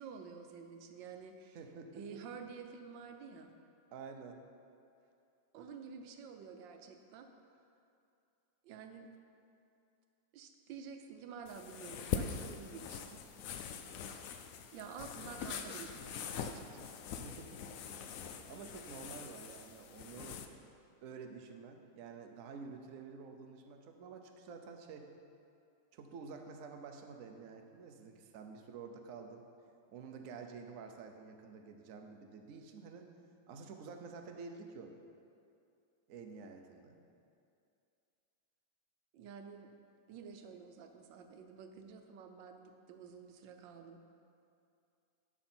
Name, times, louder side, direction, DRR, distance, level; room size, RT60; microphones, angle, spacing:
voice 1, 0.0-1.6 1.9-3.5 5.5-7.3 8.6-9.1 10.3-13.2 14.7-17.1 39.1-39.7 40.1-44.1, right 6 dB, 80° right, 5 dB, 1.4 m, -50 dB
voice 2, 1.5-2.0 3.9-4.4 17.1-17.6 17.9-18.0 18.5-20.4 21.0-25.1 25.9-29.4 29.9-33.1 33.5-34.9 36.1-36.9, right 5 dB, 60° right, 4 dB, 0.9 m, -49 dB
sound 1, 11.5-20.5, left 7 dB, 80° left, 0.7 m, -43 dB
11.5 x 6.2 x 4.4 m, 2.5 s
omnidirectional pair, 2.0 m